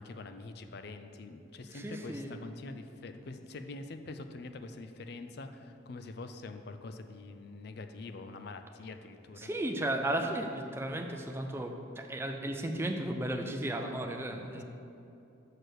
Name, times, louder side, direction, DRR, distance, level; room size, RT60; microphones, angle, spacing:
voice 1, 0.0-9.5 14.5-14.6, left 3 dB, 55° left, 8 dB, 0.4 m, -45 dB
voice 2, 1.7-2.3 9.4-14.6, right 1 dB, 10° right, 3 dB, 0.4 m, -34 dB
6.6 x 4.4 x 6.3 m, 2.8 s
head